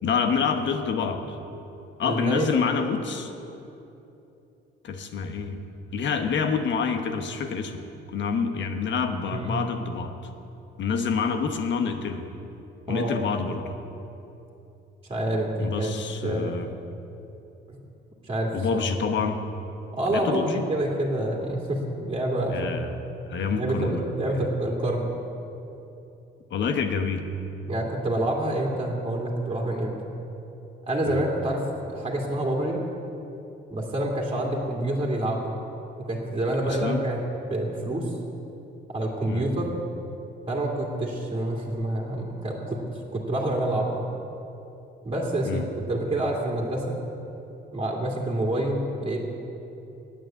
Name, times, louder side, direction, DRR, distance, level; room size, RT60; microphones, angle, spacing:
voice 1, 0.0-1.4 2.0-3.3 4.8-5.6 5.9-7.8 8.1-10.1 10.8-12.3 12.9-13.7 15.6-16.7 18.5-19.4 20.1-20.7 22.5-22.9 23.3-24.0 26.5-27.3 31.0-31.2 36.6-37.0 39.2-39.5 45.4-45.7, left 5 dB, 65° left, 6 dB, 1.1 m, -27 dB
voice 2, 2.0-2.5 9.3-9.6 12.9-13.1 15.1-15.9 16.2-16.5 17.7-17.8 18.2-18.8 19.9-22.6 23.4-25.2 27.7-29.9 30.9-32.8 33.7-35.6 36.0-38.1 38.9-39.7 40.5-42.8 43.1-44.0 45.0-45.6 45.9-47.0 47.7-49.2, right 1 dB, 25° right, -2 dB, 2.2 m, -27 dB
9.6 x 8.5 x 8.8 m, 2.9 s
cardioid pair, 90°, 20 cm